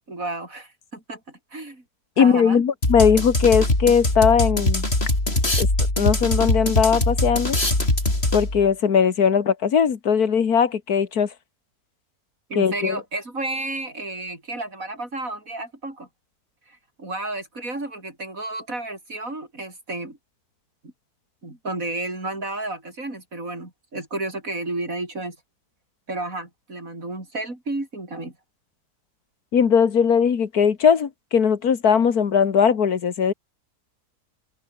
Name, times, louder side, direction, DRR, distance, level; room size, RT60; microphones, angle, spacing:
voice 1, 0.1-1.8 2.2-2.6 12.5-16.1 16.7-20.2 21.4-25.4 26.1-28.3, right 2 dB, 60° right, 6.2 m, -32 dB
voice 2, 2.2-4.9 5.6-5.7 6.0-7.6 8.3-11.3 12.6-13.0 29.5-33.3, left 7 dB, 75° left, 2.0 m, -19 dB
sound 1, 2.8-8.7, left 2 dB, 40° left, 5.8 m, -22 dB
open air
omnidirectional pair, 1.6 m